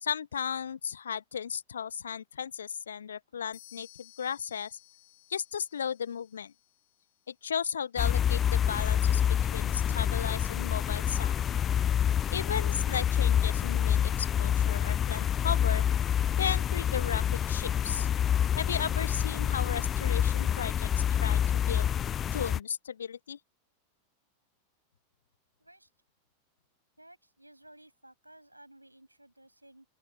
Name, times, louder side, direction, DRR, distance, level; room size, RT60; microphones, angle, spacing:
voice 1, 0.0-4.7 5.3-6.5 7.3-11.3 12.3-15.8 16.4-18.1 18.6-20.9 21.2-21.9 22.3-23.4, left 7 dB, 70° left, 1.1 m, -35 dB
sound 1, 3.5-7.3, left 18 dB, 50° left, 5.6 m, -57 dB
sound 2, 8.0-22.6, left 9 dB, 25° left, 0.4 m, -27 dB
voice 2, 25.6-25.9 27.0-29.9, right 1 dB, 85° right, 7.2 m, -56 dB
open air
figure-of-eight pair, 90°, 0 cm